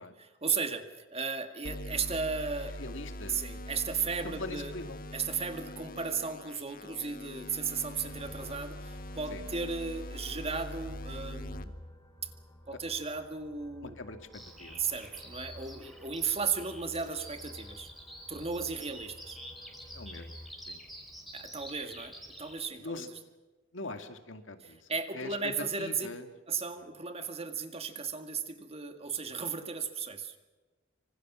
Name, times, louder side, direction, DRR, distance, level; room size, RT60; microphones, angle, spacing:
voice 1, 0.0-2.8 3.3-4.7 5.1-11.7 12.2-12.3 12.7-13.9 14.8-17.9 18.3-19.4 21.3-23.1 24.6-26.1 26.5-30.4, right 5 dB, 30° right, 7 dB, 2.0 m, -35 dB
sound 1, 1.6-11.6, left 1 dB, 50° left, 1.4 m, -42 dB
voice 2, 2.8-3.4 4.2-5.0 9.3-9.4 13.8-14.9 19.9-20.4 20.7-20.8 22.8-23.1 23.7-26.3 26.7-26.9, left 2 dB, 75° left, 7 dB, 2.2 m, -42 dB
sound 2, 7.9-20.5, equal, 20° left, 2.9 m, -53 dB
Bird vocalization bird call bird song, 14.3-22.6, equal, ahead, 4.6 m, -48 dB
26.0 x 25.5 x 6.2 m, 1.2 s
head